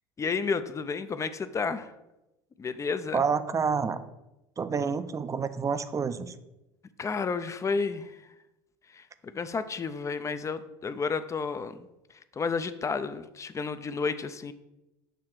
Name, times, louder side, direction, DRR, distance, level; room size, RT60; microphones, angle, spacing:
voice 1, 0.2-1.9 2.6-3.2 7.0-8.2 8.9-11.8 12.3-14.5, left 5 dB, 25° left, 12 dB, 0.5 m, -31 dB
voice 2, 3.1-4.0 4.6-6.3, right 5 dB, 25° right, 11 dB, 0.5 m, -28 dB
6.7 x 3.2 x 6.0 m, 0.94 s
hypercardioid pair, 80°, 13 cm